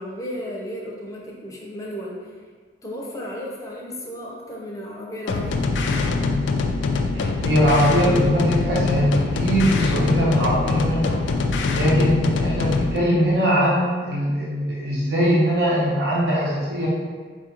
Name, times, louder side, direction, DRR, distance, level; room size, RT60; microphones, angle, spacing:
voice 1, 0.0-2.3 2.8-5.6, equal, 20° left, -3 dB, 0.6 m, -34 dB
sound 1, 5.3-13.0, left 3 dB, 85° left, 0.3 m, -23 dB
voice 2, 7.2-11.2 11.7-16.9, equal, 70° right, -7 dB, 0.7 m, -21 dB
4.4 x 2.4 x 2.9 m, 1.5 s
head